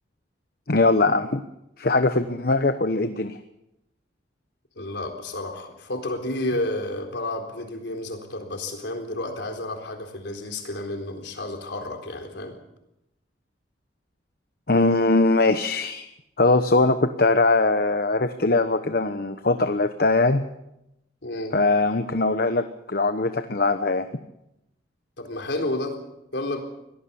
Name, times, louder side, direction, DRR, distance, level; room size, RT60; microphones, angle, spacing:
voice 1, 0.7-1.4 1.8-3.4 14.7-16.1 16.4-20.4 21.5-24.1, left 3 dB, 50° left, 9 dB, 1.0 m, -21 dB
voice 2, 4.8-12.6 21.2-21.6 25.2-26.0 26.3-26.6, left 1 dB, 70° left, 3 dB, 4.0 m, -31 dB
24.0 x 17.0 x 7.1 m, 0.85 s
head